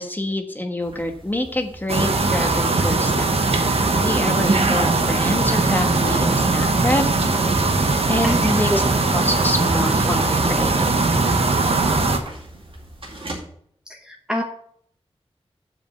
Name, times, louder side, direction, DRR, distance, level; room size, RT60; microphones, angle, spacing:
voice 1, 0.0-3.3 3.7-7.0 8.1-8.8 9.1-11.0, left 1 dB, 20° left, 4 dB, 1.3 m, -26 dB
sound 1, 0.8-13.4, right 1 dB, 60° right, 2.3 m, -41 dB
sound 2, 1.9-12.2, right 3 dB, 75° right, 1.2 m, -20 dB
voice 2, 14.1-14.4, equal, 5° right, 2 dB, 0.9 m, -24 dB
7.8 x 5.2 x 6.8 m, 0.65 s
wide cardioid pair, 95°, 10 cm